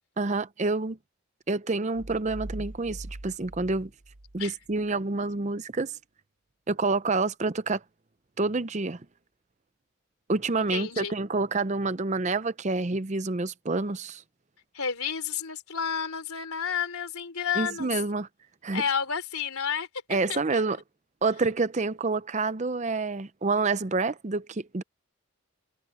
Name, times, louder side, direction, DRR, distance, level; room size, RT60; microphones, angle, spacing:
voice 1, 0.2-1.0 1.5-3.9 4.3-6.0 6.7-7.8 8.4-9.1 10.3-14.2 17.6-18.3 18.6-18.8 20.1-20.8 21.2-24.8, right 3 dB, 30° right, 0.6 m, -28 dB
sound 1, 1.9-4.9, right 1 dB, 75° right, 1.2 m, -42 dB
voice 2, 10.6-11.1 14.7-17.9 18.7-20.6, left 7 dB, 85° left, 3.5 m, -31 dB
head